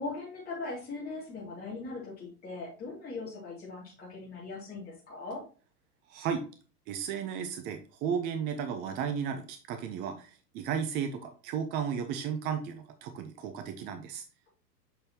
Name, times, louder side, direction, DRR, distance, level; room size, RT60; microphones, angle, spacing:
voice 1, 0.0-5.4, left 3 dB, 20° left, -6 dB, 2.4 m, -40 dB
voice 2, 6.1-6.4 6.9-14.2, right 7 dB, 20° right, 7 dB, 0.5 m, -34 dB
6.6 x 5.3 x 2.8 m, 0.37 s
figure-of-eight pair, 90°, 47 cm